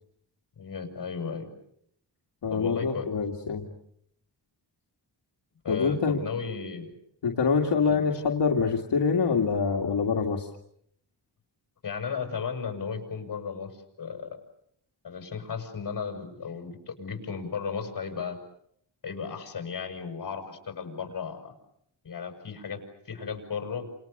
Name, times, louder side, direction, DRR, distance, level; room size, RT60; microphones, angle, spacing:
voice 1, 0.6-1.5 2.5-3.1 5.6-6.9 7.9-8.0 11.8-14.4 15.0-18.4 19.0-21.5 22.0-23.9, left 6 dB, 50° left, 4 dB, 6.9 m, -35 dB
voice 2, 2.4-3.7 5.7-6.2 7.2-10.5, left 5 dB, 70° left, 0 dB, 2.5 m, -25 dB
30.0 x 28.5 x 6.8 m, 0.72 s
wide cardioid pair, 160°, 42 cm